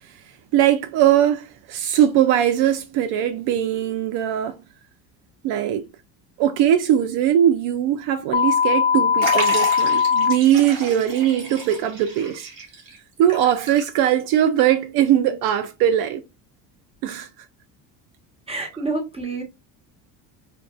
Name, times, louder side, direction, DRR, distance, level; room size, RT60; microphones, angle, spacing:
voice 1, 0.5-4.6 5.4-5.8 6.4-12.5 13.2-16.2 17.0-17.3, right 10 dB, 70° right, 0.5 m, -20 dB
sound 1, 8.3-10.3, left 6 dB, 25° left, 0.4 m, -19 dB
Liquid, 9.2-14.3 14.6-14.7 15.6-15.7, right 2 dB, 55° right, 1.9 m, -32 dB
voice 2, 18.5-19.4, right 3 dB, 15° right, 1.3 m, -28 dB
4.4 x 2.6 x 2.4 m
cardioid pair, 110°, 39 cm